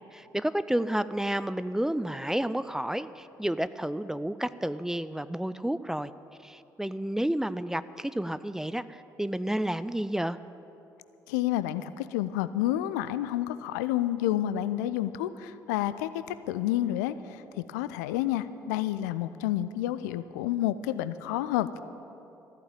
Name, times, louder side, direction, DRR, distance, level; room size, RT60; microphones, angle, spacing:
voice 1, 0.1-6.1 6.4-10.4, right 1 dB, 5° right, 14 dB, 0.4 m, -30 dB
voice 2, 11.3-21.8, left 13 dB, 65° left, 14 dB, 0.5 m, -29 dB
14.0 x 9.2 x 8.8 m, 2.9 s
figure-of-eight pair, 50°, 10 cm